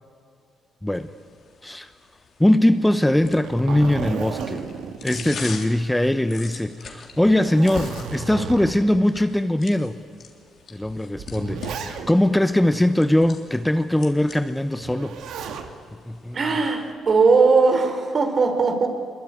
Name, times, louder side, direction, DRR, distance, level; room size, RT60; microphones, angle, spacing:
sound 1, 1.0-16.9, left 5 dB, 55° left, 3.3 m, -42 dB
voice 1, 2.4-4.6 5.0-10.0 10.7-15.2 16.0-16.4, left 1 dB, 5° left, 11 dB, 0.8 m, -21 dB
Zipper (clothing), 3.2-6.1 6.5-6.6 7.1-9.0 9.7-9.8 10.8-12.4 14.8-15.7 17.1-17.6, right 6 dB, 80° right, 2.2 m, -34 dB
voice 2, 16.3-18.9, right 4 dB, 45° right, 6 dB, 3.8 m, -19 dB
25.0 x 22.5 x 9.6 m, 2.3 s
cardioid pair, 90°, 0 cm